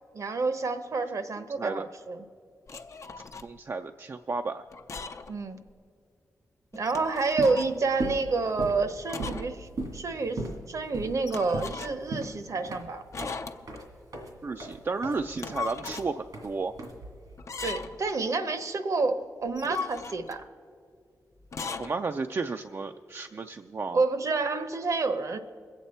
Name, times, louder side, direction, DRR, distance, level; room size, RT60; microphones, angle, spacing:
voice 1, 0.1-2.2 5.3-5.6 6.7-10.4 10.7-13.0 17.6-20.4 23.9-25.4, right 3 dB, 60° right, 9 dB, 0.9 m, -29 dB
voice 2, 1.4-1.8 3.4-4.6 14.4-16.7 21.8-24.0, right 4 dB, 45° right, 6 dB, 0.4 m, -33 dB
sound 1, 2.7-3.5 4.7-5.4 5.7-5.8 6.7-7.8 9.1-9.5 9.8-9.9 11.3-12.1 13.1-13.8 15.2-16.1 17.4-18.1 19.4-20.4 21.4-21.9, left 5 dB, 55° left, 0.6 m, -38 dB
sound 2, 7.2-17.4, right 2 dB, 85° right, 2.0 m, -38 dB
21.5 x 8.1 x 4.3 m, 2.2 s
cardioid pair, 60°, 6 cm